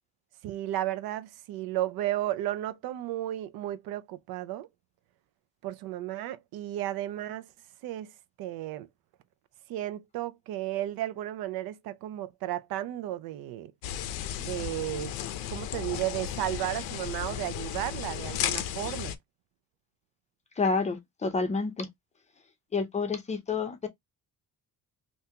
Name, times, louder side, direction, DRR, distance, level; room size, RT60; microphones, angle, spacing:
voice 1, 0.4-4.7 5.6-7.5 7.8-8.1 8.4-8.9 9.7-13.7 14.4-15.2 15.5-19.2, right 14 dB, 85° right, 0.5 m, -33 dB
sound 1, 13.8-19.2, left 10 dB, 90° left, 0.6 m, -34 dB
voice 2, 20.6-21.9 22.7-23.9, left 4 dB, 20° left, 0.5 m, -29 dB
3.4 x 2.6 x 2.7 m
cardioid pair, 170°, 35 cm